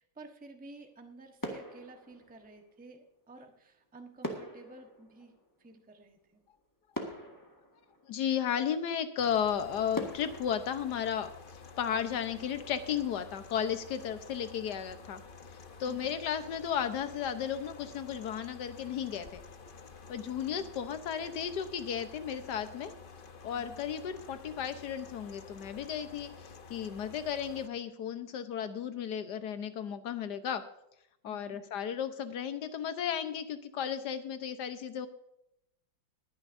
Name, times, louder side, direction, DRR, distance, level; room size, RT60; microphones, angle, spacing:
voice 1, 0.0-5.3 5.6-6.4 11.7-11.8 15.9-16.2 20.2-20.7 23.5-23.8 31.3-31.6, right 3 dB, 5° right, 4 dB, 0.9 m, -52 dB
sound 1, 0.7-1.1 1.4-2.9 4.2-6.1 6.6-6.7 6.9-8.5 9.1-9.2 9.9-11.8 12.1-12.4, equal, 10° left, 1.5 m, -43 dB
voice 2, 8.1-11.3 11.8-15.2 15.8-19.4 20.1-22.9 23.4-30.6 31.2-35.1, left 8 dB, 65° left, 10 dB, 1.4 m, -34 dB
sound 2, 9.2-27.7, left 5 dB, 45° left, 0.7 m, -51 dB
21.5 x 9.7 x 2.7 m, 0.82 s
omnidirectional pair, 2.1 m